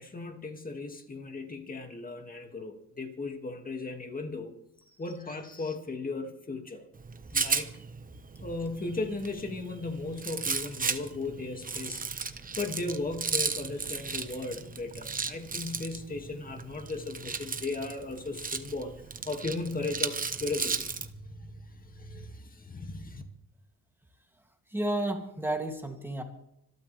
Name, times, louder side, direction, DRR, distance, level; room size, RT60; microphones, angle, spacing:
voice 1, 0.0-4.5 5.0-6.9 7.3-7.7 8.4-18.9 19.3-23.2, left 3 dB, 25° left, 4 dB, 2.4 m, -36 dB
Rattle, 7.0-21.1, right 5 dB, 25° right, 1.1 m, -35 dB
voice 2, 24.7-26.2, right 1 dB, 5° right, 3 dB, 2.8 m, -31 dB
26.0 x 13.0 x 3.5 m, 0.79 s
cardioid pair, 130°, 35 cm